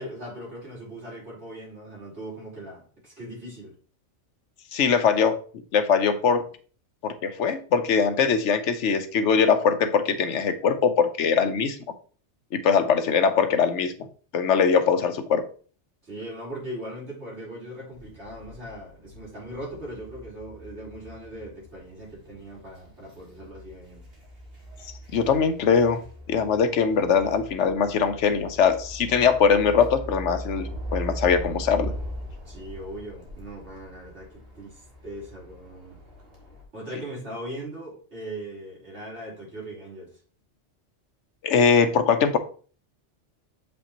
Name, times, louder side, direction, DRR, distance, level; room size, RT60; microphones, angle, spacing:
voice 1, 0.0-3.7 16.0-24.0 32.5-36.0 36.7-40.1, right 1 dB, 75° right, -6 dB, 4.0 m, -39 dB
voice 2, 4.7-5.4 5.7-6.5 7.0-11.8 12.5-14.1 14.3-15.4 25.1-26.0 26.3-31.9 41.4-42.4, left 6 dB, 90° left, 10 dB, 1.1 m, -21 dB
sound 1, 17.9-36.6, equal, 55° right, 2.3 m, -40 dB
7.2 x 5.4 x 2.9 m, 0.41 s
omnidirectional pair, 1.2 m